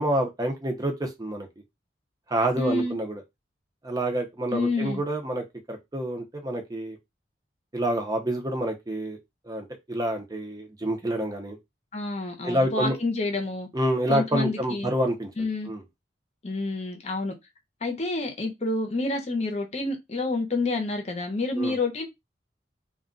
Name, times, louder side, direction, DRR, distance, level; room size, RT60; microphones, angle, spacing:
voice 1, 0.0-1.5 2.3-3.2 3.8-7.0 7.7-9.2 9.5-11.6 12.4-13.0 13.7-15.8 21.6-21.7, right 1 dB, 20° right, 0.6 m, -28 dB
voice 2, 2.6-2.9 4.5-5.0 11.9-13.7 14.1-14.9 15.4-15.7 16.4-17.3 17.8-22.1, left 2 dB, 40° left, 0.7 m, -28 dB
2.3 x 2.2 x 3.7 m
head